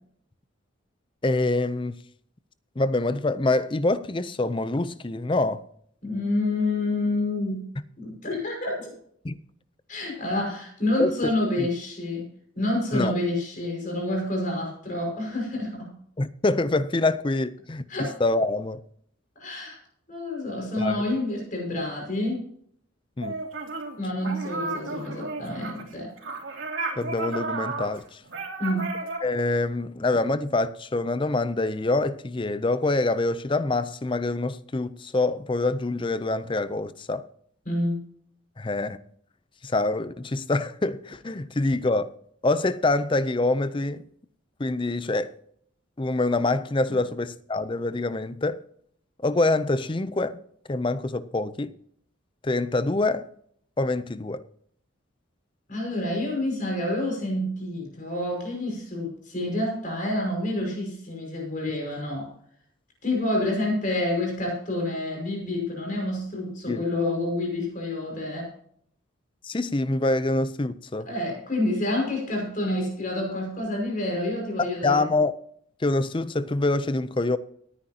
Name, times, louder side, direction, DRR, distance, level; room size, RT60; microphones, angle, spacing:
voice 1, 1.2-2.0 2.8-5.6 9.2-9.4 11.0-11.3 11.6-11.7 12.9-13.2 16.2-18.8 20.8-21.0 23.2-23.4 27.0-28.2 29.2-37.2 38.6-39.0 39.6-42.1 42.4-44.1 44.6-45.3 46.0-48.6 49.2-50.4 50.7-51.7 52.4-53.3 53.8-54.4 66.7-66.8 69.4-71.1 74.6-75.3 75.8-77.4, left 2 dB, 25° left, 0.5 m, -25 dB
voice 2, 6.0-7.7 8.0-8.9 9.9-12.3 12.6-15.9 17.9-18.1 19.4-19.8 20.1-22.5 24.0-26.1 28.6-28.9 37.7-38.0 46.9-47.0 55.7-62.3 63.0-68.5 71.1-75.0, left 1 dB, 40° left, 5.4 m, -28 dB
sound 1, 23.2-24.0 24.2-29.2, right 3 dB, 75° right, 3.2 m, -33 dB
18.5 x 10.0 x 2.9 m
head